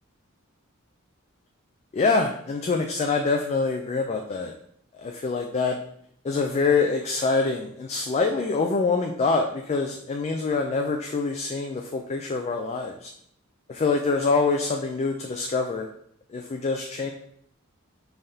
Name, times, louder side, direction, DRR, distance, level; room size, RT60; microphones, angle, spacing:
voice 1, 1.9-4.5 4.9-5.8 6.2-13.1 13.7-15.9 16.3-17.1, left 4 dB, 30° left, 3 dB, 0.3 m, -25 dB
5.5 x 3.4 x 2.7 m, 0.69 s
head